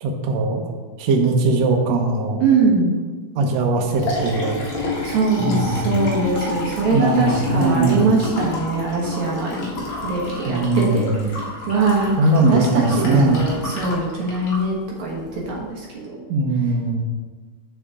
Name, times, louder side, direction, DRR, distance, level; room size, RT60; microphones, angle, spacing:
voice 1, 0.0-0.6 1.0-2.4 3.3-4.6 5.4-6.0 6.9-8.1 10.4-11.4 12.2-13.4 16.3-17.0, right 2 dB, 85° right, 2 dB, 1.5 m, -20 dB
voice 2, 2.4-2.9 5.0-11.1 11.7-16.2, right 3 dB, 60° right, -3 dB, 2.2 m, -22 dB
Liquid, 3.7-15.6, left 2 dB, 50° left, 1.6 m, -30 dB
7.6 x 6.9 x 3.6 m, 1.4 s
omnidirectional pair, 4.4 m